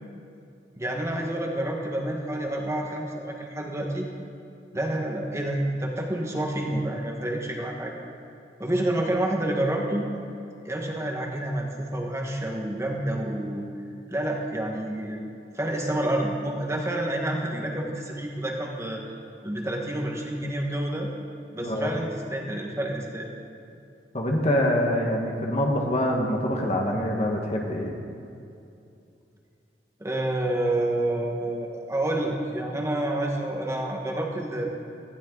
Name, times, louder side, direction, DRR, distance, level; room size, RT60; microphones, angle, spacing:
voice 1, 0.7-4.1 4.7-7.9 8.6-10.1 10.6-13.6 14.1-15.2 15.5-19.0 19.4-21.1 21.5-23.3 30.0-34.6, right 1 dB, 15° right, 0 dB, 1.6 m, -28 dB
voice 2, 21.6-21.9 24.1-28.0, left 1 dB, 40° left, 0 dB, 1.5 m, -25 dB
18.5 x 15.0 x 4.0 m, 2.6 s
head